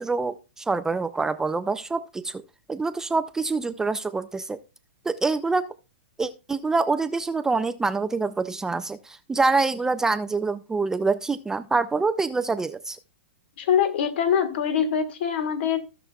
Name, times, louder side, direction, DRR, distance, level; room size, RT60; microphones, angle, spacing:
voice 1, 0.0-2.4 2.7-4.6 5.1-5.7 6.2-13.0, right 3 dB, 10° right, 0.3 m, -26 dB
voice 2, 13.6-15.8, left 8 dB, 60° left, 1.4 m, -23 dB
16.5 x 5.9 x 2.3 m
hypercardioid pair, 140°, 7 cm